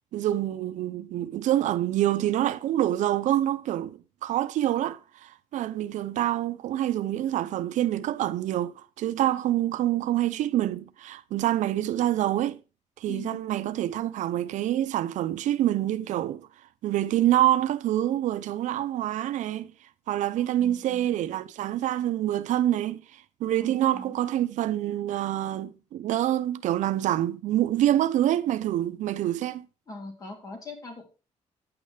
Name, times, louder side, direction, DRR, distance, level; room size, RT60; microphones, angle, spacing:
voice 1, 0.1-12.6 13.0-16.5 16.8-19.7 20.1-29.6, right 13 dB, 80° right, 0.7 m, -26 dB
voice 2, 13.1-13.5 20.3-21.3 23.6-24.2 29.9-31.0, left 3 dB, 30° left, 3.6 m, -42 dB
9.5 x 8.9 x 4.9 m
cardioid pair, 170°, 13 cm